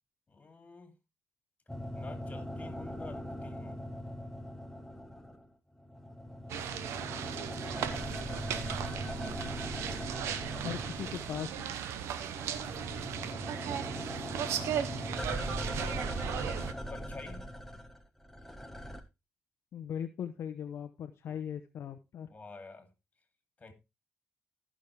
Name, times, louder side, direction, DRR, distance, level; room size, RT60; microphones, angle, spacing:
voice 1, 0.3-0.9 1.9-3.8 7.6-8.5 10.5-10.8 12.8-13.9 15.3-16.5 16.9-17.5 21.3-21.4 22.3-22.9 23.6-23.7, left 3 dB, 30° left, 2.9 m, -51 dB
sound 1, 1.7-5.5 5.8-11.7 12.0-19.0, equal, 5° left, 1.4 m, -40 dB
sound 2, 6.5-16.7, right 9 dB, 90° right, 0.9 m, -37 dB
voice 2, 10.6-11.8 19.7-22.3, left 9 dB, 70° left, 0.8 m, -39 dB
14.5 x 6.2 x 3.3 m
cardioid pair, 80°, 4 cm